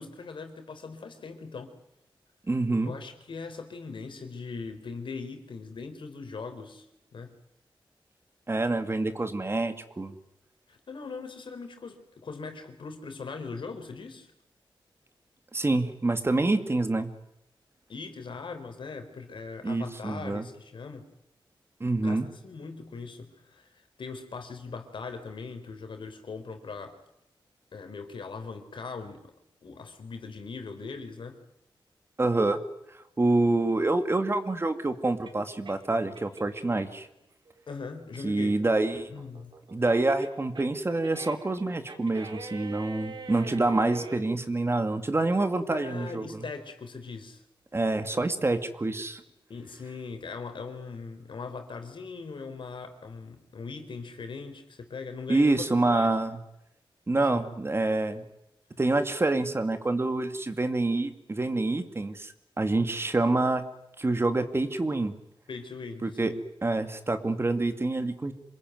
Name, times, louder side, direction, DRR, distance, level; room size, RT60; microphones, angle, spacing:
voice 1, 0.0-1.7 2.8-6.9 7.1-7.4 10.7-14.3 17.9-21.1 21.9-27.0 27.7-29.3 29.6-31.4 37.7-38.6 38.9-39.6 45.7-47.4 47.9-48.2 49.5-56.2 57.2-57.4 65.5-66.4, left 4 dB, 70° left, 7 dB, 4.2 m, -40 dB
voice 2, 2.5-2.9 8.5-10.1 15.5-17.1 19.6-20.5 21.8-22.3 32.2-32.6 33.2-37.1 38.2-39.1 39.7-46.3 47.7-49.2 55.3-56.4 57.1-58.2 58.8-63.6 64.0-65.1 66.0-66.3 66.6-68.3, right 2 dB, 30° right, 9 dB, 2.2 m, -27 dB
sound 1, 33.6-37.1 37.5-44.2, right 4 dB, 60° right, 4.2 m, -44 dB
27.5 x 21.0 x 9.5 m, 0.83 s
wide cardioid pair, 110°, 9 cm